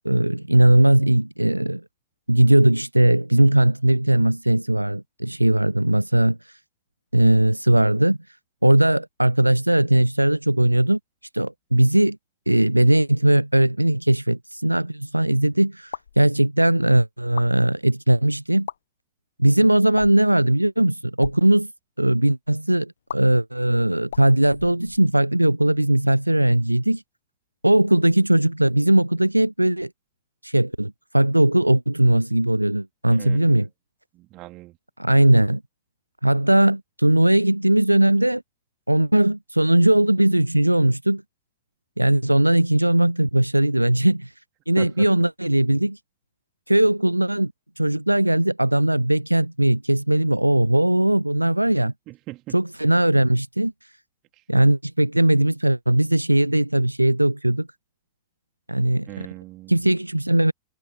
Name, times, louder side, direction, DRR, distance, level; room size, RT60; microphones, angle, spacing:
voice 1, 0.0-1.8 2.3-6.4 7.1-8.2 8.6-11.0 11.3-12.2 12.5-18.7 19.4-21.7 22.0-27.0 27.6-29.9 30.4-33.7 35.0-35.6 36.2-38.4 38.9-41.2 42.0-44.3 44.7-46.0 46.7-47.5 47.8-51.9 52.5-53.7 54.5-57.7 58.7-59.1 59.7-60.5, right 1 dB, 85° right, 0.7 m, -19 dB
sound 1, 15.8-16.2 17.2-17.5 18.5-18.8 19.9-20.3 21.1-21.4 23.1-23.2 24.0-25.2, left 8 dB, 65° left, 0.9 m, -37 dB
voice 2, 33.1-33.5 34.1-34.8 44.8-45.1 52.1-52.6 59.1-59.8, right 19 dB, 40° right, 3.6 m, -39 dB
figure-of-eight pair, 90°, 0 cm